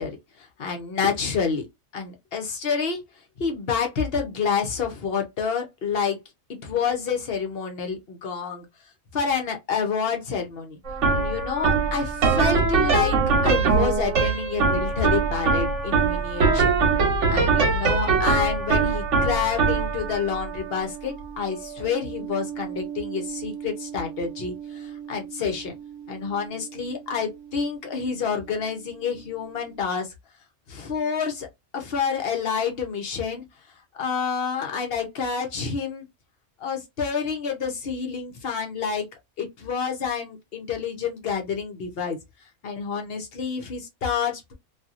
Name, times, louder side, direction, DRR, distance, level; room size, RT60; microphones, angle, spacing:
voice 1, 0.0-1.7 1.9-3.0 3.4-6.2 6.5-8.7 9.1-10.8 11.1-16.7 17.3-25.7 26.1-30.1 30.7-31.5 31.7-33.4 33.9-36.1 36.6-39.1 39.4-42.2 42.6-44.5, left 6 dB, 55° left, 1.0 m, -28 dB
sound 1, 10.9-28.1, right 4 dB, 75° right, 1.2 m, -24 dB
2.8 x 2.7 x 2.5 m
omnidirectional pair, 1.3 m